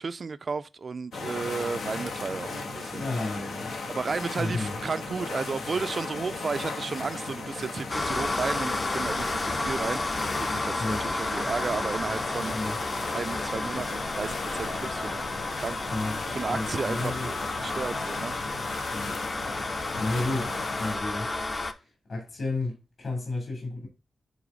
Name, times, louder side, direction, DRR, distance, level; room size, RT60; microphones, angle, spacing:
voice 1, 0.0-3.0 3.9-12.5 13.1-15.8 16.3-18.3 18.7-18.9, right 4 dB, 40° right, 0.4 m, -33 dB
sound 1, 1.1-21.0, left 3 dB, 85° left, 1.6 m, -36 dB
voice 2, 2.9-3.7 4.4-4.8 10.8-11.0 12.5-12.8 15.9-17.3 18.9-19.2 20.0-21.3 21.7-23.9, left 2 dB, 50° left, 3.1 m, -32 dB
sound 2, 7.9-21.7, left 2 dB, 25° left, 0.7 m, -32 dB
9.3 x 3.5 x 3.8 m
wide cardioid pair, 145°, 0 cm